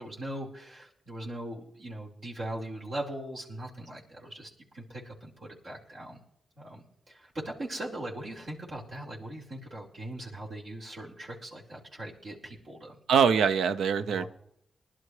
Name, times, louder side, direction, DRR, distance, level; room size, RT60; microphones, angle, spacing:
voice 1, 0.0-6.2 6.6-13.0 14.1-14.3, right 1 dB, 70° right, -5 dB, 4.3 m, -40 dB
voice 2, 13.1-14.2, right 6 dB, 85° right, 12 dB, 0.5 m, -23 dB
21.0 x 11.5 x 3.2 m, 0.72 s
supercardioid pair, 50°, 0 cm